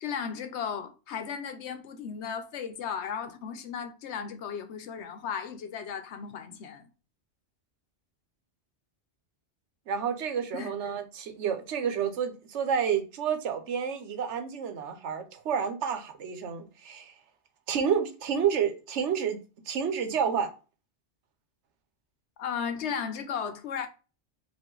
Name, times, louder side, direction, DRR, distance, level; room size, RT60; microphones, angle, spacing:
voice 1, 0.0-6.9 10.5-10.7 22.4-23.9, left 7 dB, 75° left, 1.0 m, -35 dB
voice 2, 9.9-17.1 17.7-19.4 19.7-20.5, right 7 dB, 85° right, 1.1 m, -29 dB
5.1 x 2.6 x 3.8 m
omnidirectional pair, 1.2 m